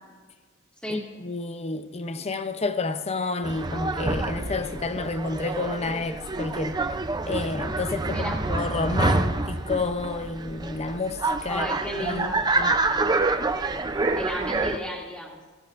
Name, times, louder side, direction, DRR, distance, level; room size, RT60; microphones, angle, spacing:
voice 1, 0.9-7.0 7.3-12.8, left 3 dB, 30° left, 0.6 m, -30 dB
sound 1, 3.4-14.8, right 3 dB, 20° right, 0.5 m, -27 dB
voice 2, 8.0-8.4 11.5-12.4 14.2-15.4, equal, 5° left, 2.4 m, -33 dB
20.0 x 16.0 x 2.5 m
head